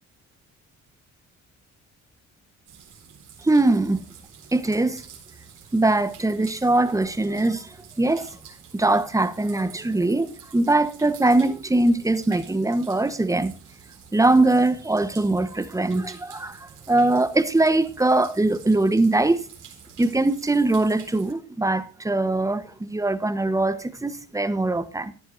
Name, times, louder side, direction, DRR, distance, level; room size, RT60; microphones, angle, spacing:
sound 1, 2.6-21.3, right 7 dB, 80° right, 3.9 m, -48 dB
voice 1, 3.4-4.0 4.5-5.0 5.7-7.7 8.0-8.3 8.7-13.5 14.1-16.6 16.9-19.4 20.0-25.1, right 2 dB, 10° right, 1.1 m, -21 dB
14.5 x 10.5 x 2.6 m
cardioid pair, 90°, 30 cm